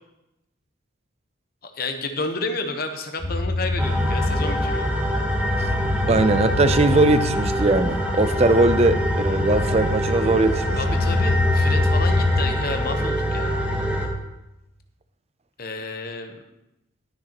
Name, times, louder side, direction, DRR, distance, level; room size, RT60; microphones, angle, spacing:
voice 1, 1.6-5.0 10.8-13.6 15.6-16.4, left 3 dB, 45° left, 5 dB, 1.0 m, -31 dB
sound 1, 3.2-12.5, left 2 dB, 80° left, 2.4 m, -26 dB
sound 2, 3.8-14.1, equal, 5° right, 1.0 m, -25 dB
voice 2, 6.1-10.8, right 2 dB, 30° right, 11 dB, 0.5 m, -20 dB
20.0 x 6.6 x 3.0 m, 0.91 s
head